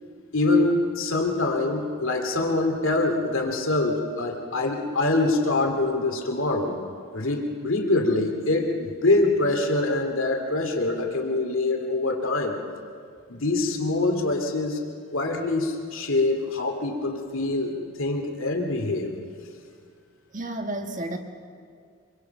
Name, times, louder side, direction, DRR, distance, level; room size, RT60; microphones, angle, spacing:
voice 1, 0.3-6.8 7.1-12.6 13.3-14.8 15.1-19.1, left 2 dB, 65° left, 2 dB, 2.4 m, -24 dB
voice 2, 20.3-21.2, right 1 dB, 35° right, 5 dB, 1.6 m, -31 dB
25.5 x 23.5 x 5.8 m, 2.2 s
head